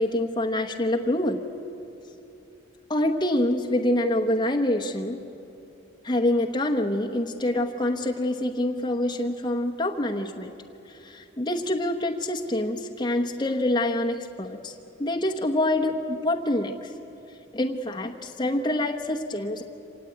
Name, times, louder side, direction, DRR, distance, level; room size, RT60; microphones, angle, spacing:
voice 1, 0.0-1.4 2.9-5.2 6.0-10.5 10.9-16.9 17.5-19.6, left 1 dB, 20° left, 1 dB, 1.0 m, -26 dB
26.0 x 18.0 x 9.2 m, 2.8 s
head